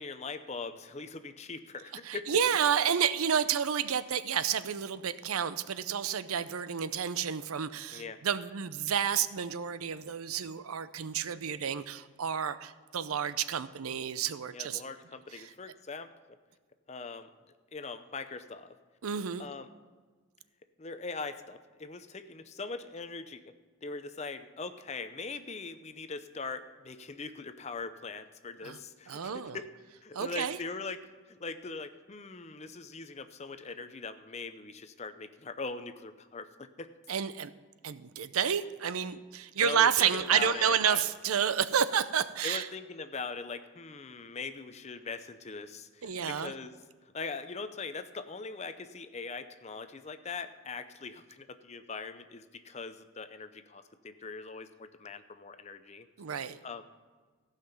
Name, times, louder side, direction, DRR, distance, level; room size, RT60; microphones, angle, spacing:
voice 1, 0.0-2.4 7.9-8.2 14.5-16.1 16.9-17.3 17.7-18.8 19.4-19.7 20.8-23.5 23.8-29.7 30.0-36.5 36.8-36.9 39.6-41.1 42.4-46.8 47.1-56.1 56.6-56.8, left 4 dB, 30° left, 10 dB, 0.6 m, -41 dB
voice 2, 2.0-14.8 15.4-15.5 19.0-19.5 28.6-28.8 29.1-29.6 30.1-30.6 37.1-37.5 37.8-42.7 46.0-46.5 56.2-56.6, right 8 dB, 85° right, 14 dB, 0.6 m, -30 dB
15.0 x 5.8 x 6.9 m, 1.5 s
head